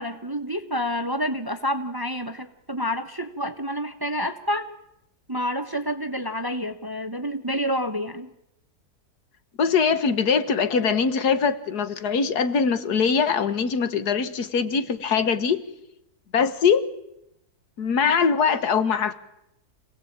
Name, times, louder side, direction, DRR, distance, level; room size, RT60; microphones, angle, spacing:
voice 1, 0.0-4.7 5.3-8.3, equal, 15° right, 9 dB, 0.9 m, -28 dB
voice 2, 9.6-15.6 16.3-16.8 17.8-19.1, left 6 dB, 80° left, 12 dB, 1.8 m, -22 dB
26.0 x 17.5 x 8.6 m, 0.83 s
omnidirectional pair, 1.7 m